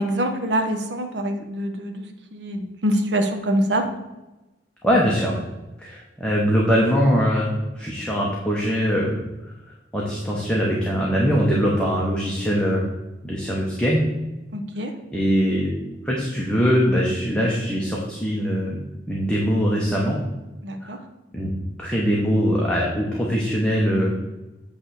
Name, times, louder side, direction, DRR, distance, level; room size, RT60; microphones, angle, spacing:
voice 1, 0.0-2.1 2.3-3.9 14.5-14.9 20.6-21.0, right 1 dB, 70° right, 5 dB, 0.9 m, -24 dB
voice 2, 4.8-5.3 5.8-9.1 9.4-9.5 9.9-12.9 13.2-14.1 15.1-15.7 16.0-18.8 19.1-20.2 20.8-20.9 21.3-21.5 21.8-24.1, equal, 5° left, -4 dB, 1.0 m, -22 dB
8.5 x 3.4 x 6.4 m, 1.0 s
head